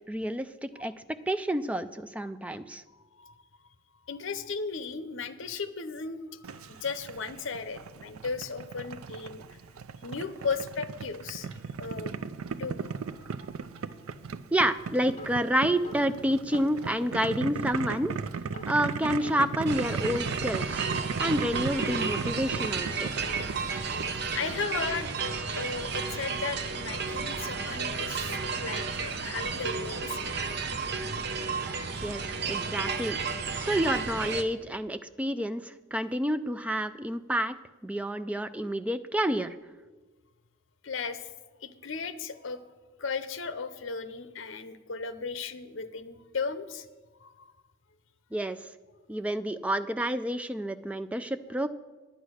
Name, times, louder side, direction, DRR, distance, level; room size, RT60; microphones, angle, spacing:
voice 1, 0.1-0.9 1.3-2.8 14.5-18.1 18.7-20.8 21.2-23.1 32.0-32.2 32.5-33.2 33.6-37.6 37.8-39.6 48.3-48.6 49.1-51.7, equal, 5° right, 11 dB, 0.3 m, -29 dB
voice 2, 4.1-9.4 10.0-11.5 11.8-12.2 12.6-13.7 23.5-23.7 24.3-25.1 25.5-30.3 40.8-41.3 41.6-42.6 43.0-46.9 47.2-47.5, left 5 dB, 65° left, 11 dB, 0.7 m, -36 dB
Boiling, 6.4-24.5, right 5 dB, 90° right, 0.5 m, -37 dB
sound 1, 15.0-18.7 19.0-21.4 21.7-24.8, equal, 35° left, 1.0 m, -48 dB
sound 2, 19.7-34.4, right 5 dB, 50° right, 0.7 m, -32 dB
9.9 x 9.2 x 6.4 m, 1.3 s
head